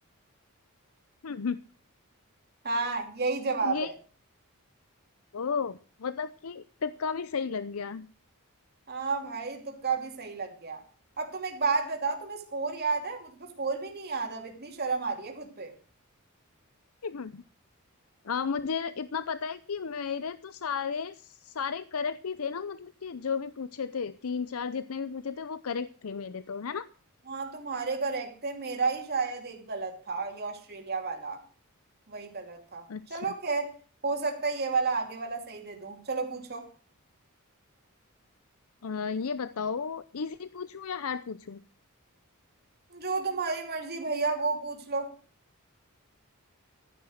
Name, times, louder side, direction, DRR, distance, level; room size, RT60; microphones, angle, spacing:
voice 1, 1.2-1.6 3.6-3.9 5.3-8.1 17.0-17.4 18.2-26.9 32.9-33.2 38.8-41.6, left 6 dB, 70° left, 0.6 m, -33 dB
voice 2, 2.6-3.9 8.9-10.8 11.2-15.7 27.3-31.4 32.1-32.8 33.1-33.7 34.0-36.7 42.9-45.1, right 4 dB, 50° right, 2.9 m, -31 dB
14.5 x 10.0 x 6.5 m
head